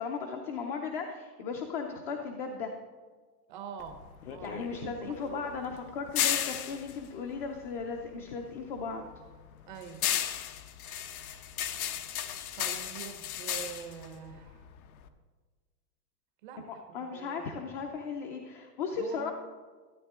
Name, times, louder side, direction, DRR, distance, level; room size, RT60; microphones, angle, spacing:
voice 1, 0.0-2.7 4.4-9.0 16.7-19.3, left 5 dB, 35° left, 3 dB, 0.6 m, -36 dB
voice 2, 3.5-5.5 9.7-10.0 12.6-14.7 16.4-17.4 18.9-19.3, right 8 dB, 30° right, 6 dB, 0.7 m, -45 dB
sound 1, 3.8-8.3 8.6-15.1, left 10 dB, 65° left, 0.9 m, -35 dB
13.0 x 8.1 x 3.7 m, 1.5 s
supercardioid pair, 165°, 48 cm